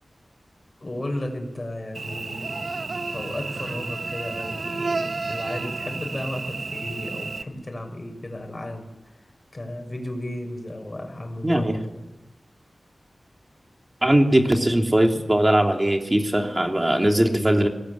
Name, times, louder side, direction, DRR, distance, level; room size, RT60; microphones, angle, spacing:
voice 1, 0.8-2.5 3.1-9.2 9.5-12.0, left 1 dB, 30° left, 4 dB, 6.4 m, -34 dB
Cricket / Buzz, 1.9-7.4, right 3 dB, 65° right, 1.1 m, -31 dB
voice 2, 11.4-11.8 14.0-17.7, right 1 dB, 20° right, 3 dB, 3.1 m, -20 dB
23.0 x 20.0 x 9.8 m, 1.0 s
wide cardioid pair, 95°, 0 cm